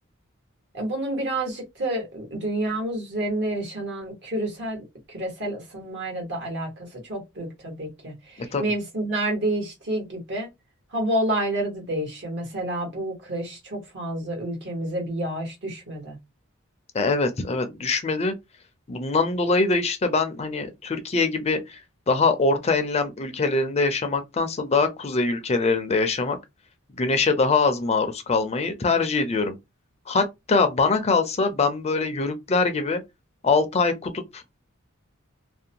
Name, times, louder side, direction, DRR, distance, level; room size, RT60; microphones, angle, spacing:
voice 1, 0.7-10.5 10.9-16.2, right 1 dB, 60° right, 1.3 m, -29 dB
voice 2, 16.9-18.3 18.9-21.8 22.1-26.4 27.0-29.5 30.1-33.0 33.4-34.4, left 3 dB, 30° left, 0.4 m, -23 dB
2.5 x 2.1 x 2.8 m
head